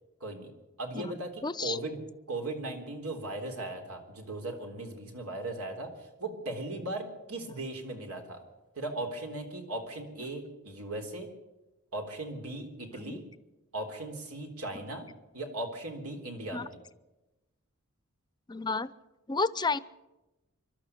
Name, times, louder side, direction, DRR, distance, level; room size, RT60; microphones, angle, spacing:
voice 1, 0.2-0.5 0.8-5.9 6.2-8.4 8.7-11.3 11.9-13.2 13.7-15.1 15.3-16.8, right 2 dB, 90° right, 4 dB, 3.7 m, -38 dB
voice 2, 1.4-1.8 12.9-13.2 16.5-16.7 18.5-18.9 19.3-19.8, left 4 dB, 20° left, 16 dB, 0.6 m, -31 dB
26.0 x 12.5 x 8.4 m, 1.0 s
head